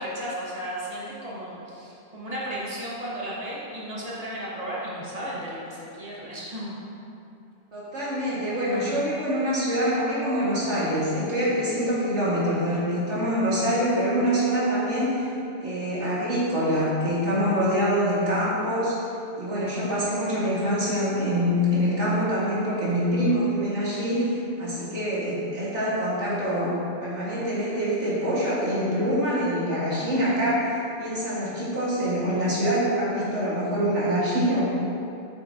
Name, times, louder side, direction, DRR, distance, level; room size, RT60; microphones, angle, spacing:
voice 1, 0.0-6.8, equal, 35° right, -6 dB, 1.6 m, -34 dB
voice 2, 7.7-15.3 15.6-19.0 19.3-26.7 27.0-34.7, equal, 80° right, -8 dB, 2.1 m, -25 dB
8.3 x 6.9 x 2.7 m, 2.7 s
omnidirectional pair, 1.2 m